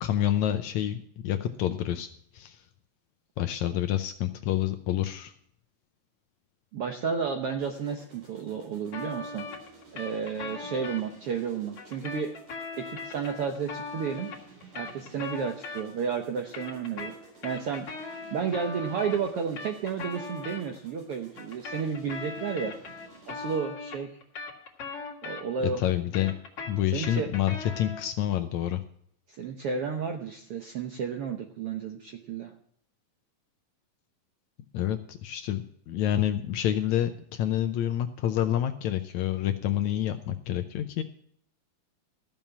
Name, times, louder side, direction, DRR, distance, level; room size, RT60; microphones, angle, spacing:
voice 1, 0.0-1.0 1.2-2.1 2.3-2.6 3.4-5.3 25.8-26.3 26.7-28.8 34.7-41.0, left 11 dB, 75° left, 9 dB, 1.8 m, -28 dB
voice 2, 6.7-9.5 9.9-12.3 12.8-14.3 14.7-17.1 17.4-17.9 18.3-22.7 23.3-24.1 25.2-25.8 26.9-27.3 29.3-32.5, right 6 dB, 70° right, 4 dB, 1.3 m, -32 dB
sound 1, 7.6-23.8, right 3 dB, 50° right, 5.3 m, -54 dB
sound 2, 8.9-11.0 11.8-16.1 16.4-20.6 21.4-25.7 26.0-28.1, left 4 dB, 50° left, 2.5 m, -39 dB
14.0 x 7.3 x 5.8 m, 0.68 s
omnidirectional pair, 3.8 m